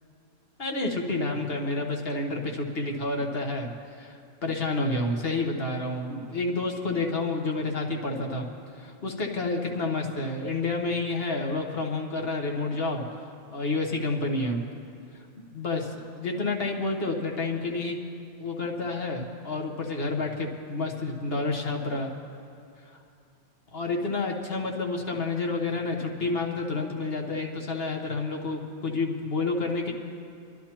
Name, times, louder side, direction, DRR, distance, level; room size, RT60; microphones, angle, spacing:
voice 1, 0.6-8.4 8.7-13.0 13.5-14.6 15.5-18.0 18.4-22.1 23.7-29.9, left 2 dB, 45° left, 2 dB, 1.3 m, -29 dB
25.0 x 11.5 x 2.9 m, 2.5 s
omnidirectional pair, 1.4 m